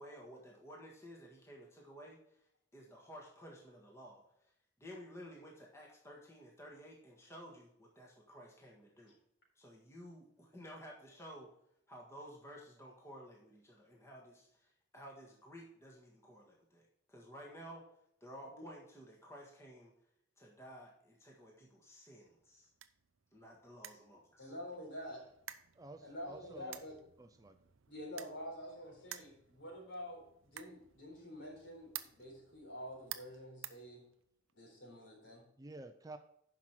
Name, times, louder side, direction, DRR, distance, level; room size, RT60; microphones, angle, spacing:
voice 1, 0.0-2.4 2.7-4.5 4.8-9.1 9.5-11.5 11.9-16.8 17.1-17.9 18.2-19.9 20.4-22.7 23.3-24.5, equal, 15° left, -1 dB, 1.5 m, -53 dB
sound 1, 22.2-34.5, right 12 dB, 85° right, 0.6 m, -53 dB
voice 2, 24.4-25.2 26.0-27.0 27.9-30.3 30.5-34.0 34.5-35.4, equal, 60° left, -1 dB, 4.0 m, -47 dB
voice 3, 25.8-26.8 27.2-27.5 35.6-36.2, right 2 dB, 15° right, 8 dB, 0.4 m, -51 dB
9.8 x 5.9 x 4.6 m, 0.72 s
head